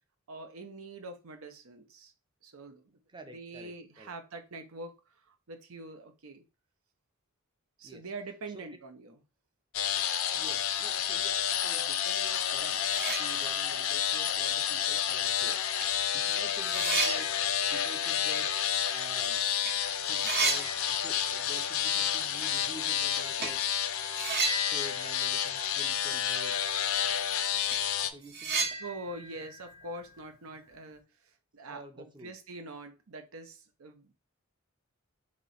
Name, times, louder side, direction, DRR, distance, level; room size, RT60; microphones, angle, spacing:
voice 1, 0.3-2.1 2.4-3.0 3.2-4.9 5.5-6.4 7.8-9.2 28.8-31.0 31.5-34.1, right 2 dB, 90° right, 6 dB, 0.7 m, -44 dB
voice 2, 3.1-4.1 7.8-8.0 8.5-8.7 10.3-12.8 13.2-15.6 15.9-18.5 18.9-19.4 20.0-23.6 24.6-26.6 28.1-28.8 31.7-32.3, right 1 dB, 20° right, 6 dB, 0.5 m, -49 dB
sound 1, 9.7-28.1, left 9 dB, 80° left, 0.4 m, -30 dB
sound 2, 12.5-12.6 12.8-13.9 14.3-14.4 15.3-15.4 15.8-19.3 19.5-19.7 20.0-21.6 21.8-21.9 23.4-23.6 24.1-26.3 26.6-26.7 27.1-27.2 27.5-30.7, right 4 dB, 50° right, 0.8 m, -35 dB
3.1 x 2.9 x 4.0 m, 0.31 s
head